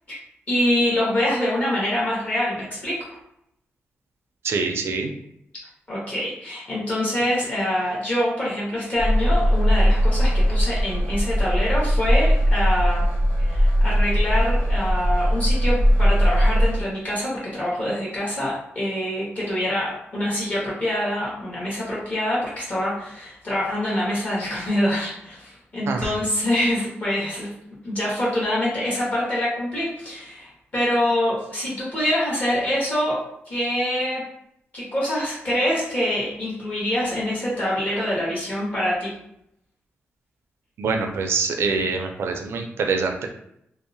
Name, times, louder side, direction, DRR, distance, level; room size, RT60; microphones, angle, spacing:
voice 1, 0.5-3.1 5.9-13.1 13.4-27.5 27.8-34.2 34.7-39.2, left 1 dB, 35° left, -7 dB, 1.1 m, -25 dB
voice 2, 4.4-5.1 25.9-26.1 40.8-43.3, right 4 dB, 70° right, 4 dB, 0.4 m, -25 dB
sound 1, 9.0-16.8, equal, 65° left, 1.3 m, -19 dB
2.7 x 2.0 x 2.6 m, 0.76 s
wide cardioid pair, 145°, 4 cm